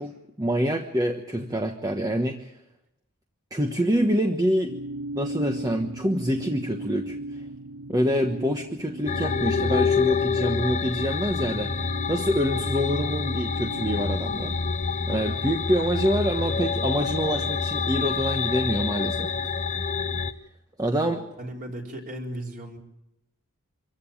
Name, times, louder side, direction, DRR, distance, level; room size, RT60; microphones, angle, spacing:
voice 1, 0.0-2.5 3.5-4.7 5.1-7.2 7.9-11.7 12.1-14.6 15.1-19.3 20.8-21.2, equal, 15° right, 4 dB, 1.2 m, -26 dB
sound 1, 4.7-14.7, right 2 dB, 75° right, 0.7 m, -38 dB
sound 2, 9.1-20.3, left 5 dB, 35° left, 0.8 m, -27 dB
voice 2, 20.9-22.8, right 1 dB, 40° right, 0 dB, 4.4 m, -37 dB
25.5 x 15.5 x 8.7 m, 0.86 s
head